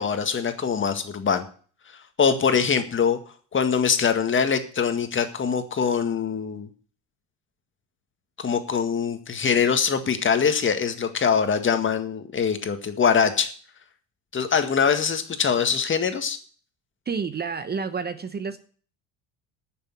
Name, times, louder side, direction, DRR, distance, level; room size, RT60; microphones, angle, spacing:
voice 1, 0.0-1.5 2.2-3.2 3.5-6.7 8.4-13.5 14.3-16.4, left 6 dB, 30° left, 8 dB, 1.9 m, -23 dB
voice 2, 17.1-18.6, right 5 dB, 25° right, 12 dB, 0.9 m, -29 dB
9.6 x 7.0 x 9.1 m, 0.43 s
supercardioid pair, 100°, 38 cm